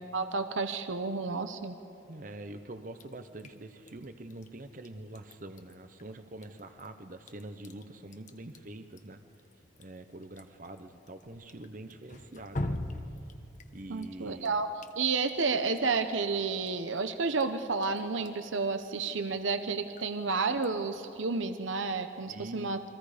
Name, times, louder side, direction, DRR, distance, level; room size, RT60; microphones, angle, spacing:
voice 1, 0.0-1.8 13.9-14.7 15.0-22.9, right 4 dB, 75° right, 9 dB, 0.9 m, -31 dB
voice 2, 2.0-9.2 9.8-12.8 13.7-14.6 22.3-22.8, right 2 dB, 40° right, 8 dB, 0.8 m, -45 dB
Drip, 2.9-21.2, left 1 dB, 40° left, 1.1 m, -46 dB
28.5 x 24.0 x 5.1 m, 2.5 s
head